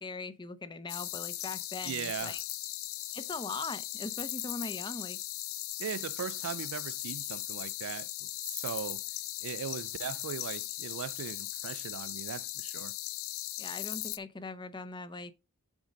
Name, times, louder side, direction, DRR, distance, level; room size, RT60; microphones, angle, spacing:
voice 1, 0.0-2.4 3.1-5.2 13.6-15.3, left 3 dB, 20° left, 0.6 m, -40 dB
sound 1, 0.9-14.2, left 16 dB, 65° left, 0.6 m, -38 dB
voice 2, 1.8-2.4 5.8-9.0 9.4-13.0, right 8 dB, 65° right, 0.4 m, -39 dB
7.3 x 5.1 x 5.2 m
head